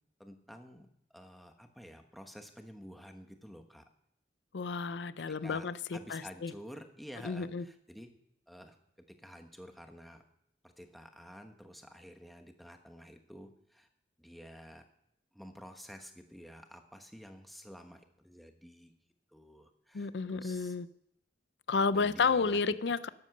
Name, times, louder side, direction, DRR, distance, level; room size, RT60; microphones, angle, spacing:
voice 1, 0.2-3.8 5.4-8.1 8.5-8.8 9.2-10.2 10.6-13.9 14.2-14.8 15.3-18.9 19.3-20.7 21.9-22.6, equal, ahead, 5 dB, 1.1 m, -51 dB
voice 2, 4.5-6.5 7.2-7.6 19.9-20.9 21.7-23.1, left 4 dB, 80° left, 15 dB, 0.5 m, -31 dB
12.5 x 10.5 x 6.5 m, 0.78 s
head